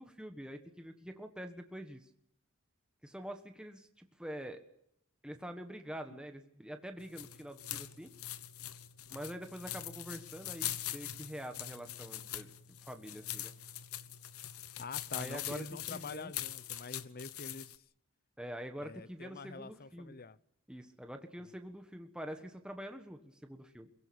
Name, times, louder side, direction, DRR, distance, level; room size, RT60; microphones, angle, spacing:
voice 1, 0.0-2.1 3.0-4.6 5.2-8.1 9.1-13.5 15.1-15.6 15.9-16.3 18.4-20.1 20.7-23.9, equal, 5° right, 1.5 m, -45 dB
sound 1, 7.0-17.8, left 12 dB, 70° left, 1.0 m, -43 dB
voice 2, 14.8-17.8 18.8-20.4, left 4 dB, 45° left, 0.8 m, -46 dB
23.0 x 17.5 x 8.7 m
head